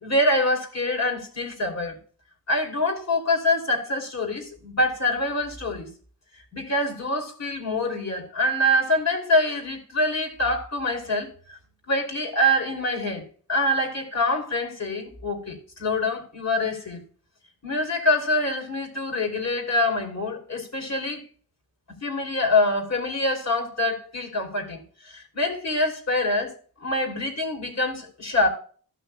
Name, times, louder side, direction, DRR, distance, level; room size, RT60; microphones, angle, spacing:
voice 1, 0.0-2.0 2.5-5.9 6.5-11.3 11.9-13.2 13.5-17.0 17.6-21.2 22.0-24.8 25.1-26.5 26.8-28.5, left 1 dB, 45° left, 2.9 m, -25 dB
14.0 x 6.0 x 2.2 m
wide cardioid pair, 100°, 36 cm